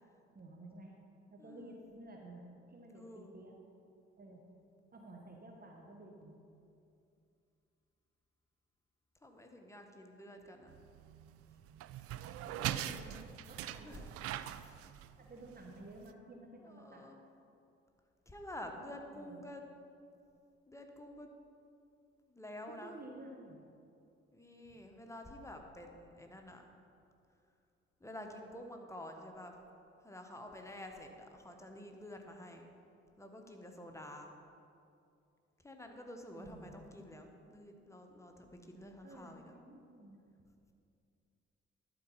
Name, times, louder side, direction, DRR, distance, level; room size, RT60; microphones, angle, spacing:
voice 1, 0.3-0.9 1.3-3.6 4.2-4.4 4.9-6.4 12.5-14.0 14.6-14.7 15.2-17.0 19.1-19.4 22.8-23.6 24.7-24.8 36.3-36.8 39.0-40.5, right 2 dB, 30° right, 1 dB, 1.1 m, -53 dB
voice 2, 1.4-1.8 2.9-3.3 9.2-10.8 12.6-12.8 13.8-14.0 14.6-14.8 16.6-17.2 18.3-19.6 20.7-21.3 22.3-22.9 24.3-26.7 28.0-29.6 30.0-32.7 33.2-34.3 35.6-39.5, left 1 dB, 10° left, 3 dB, 1.2 m, -49 dB
sound 1, 10.7-16.1, right 12 dB, 50° right, 0.4 m, -42 dB
11.5 x 4.3 x 5.7 m, 2.5 s
figure-of-eight pair, 45°, 31 cm